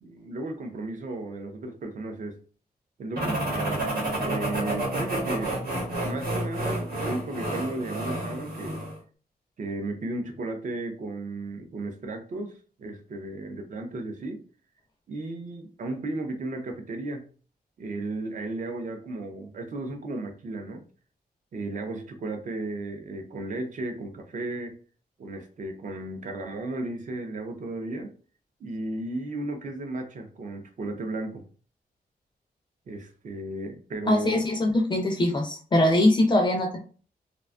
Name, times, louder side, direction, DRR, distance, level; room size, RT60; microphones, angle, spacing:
voice 1, 0.0-2.4 3.0-3.8 4.2-5.6 6.0-8.8 9.6-14.4 15.1-17.2 17.8-20.8 21.5-24.8 25.2-28.1 28.6-31.4 32.9-34.4, right 2 dB, 50° right, 4 dB, 0.5 m, -34 dB
sound 1, 3.1-9.0, right 1 dB, 70° right, 1.0 m, -30 dB
voice 2, 34.1-36.8, left 1 dB, 30° left, 1 dB, 0.4 m, -22 dB
2.5 x 2.2 x 2.4 m, 0.39 s
wide cardioid pair, 170°, 16 cm